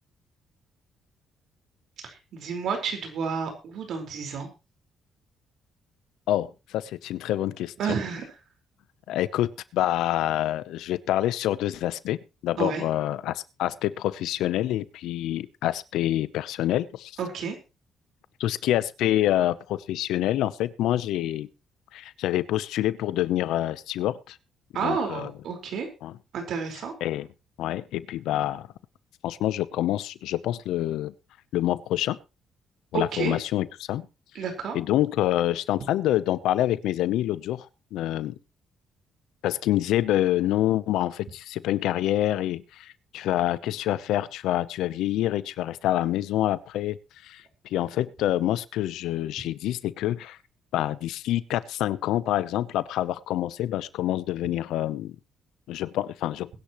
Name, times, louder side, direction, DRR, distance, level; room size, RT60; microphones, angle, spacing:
voice 1, 2.0-4.5 7.8-8.3 12.6-12.8 17.2-17.6 24.7-25.9 26.3-26.9 32.9-33.4 34.3-34.8, right 5 dB, 70° right, 3 dB, 4.7 m, -30 dB
voice 2, 6.3-7.7 9.1-12.2 12.4-17.1 18.4-21.5 21.9-24.4 24.8-25.3 26.0-26.1 27.0-27.3 27.6-28.7 29.2-31.1 31.5-32.2 32.9-34.1 34.7-38.3 39.4-47.0 47.2-47.4 47.7-50.4 50.7-55.1 55.7-56.5, left 13 dB, 90° left, 17 dB, 0.8 m, -27 dB
22.0 x 10.5 x 3.1 m, 0.30 s
cardioid pair, 90°, 0 cm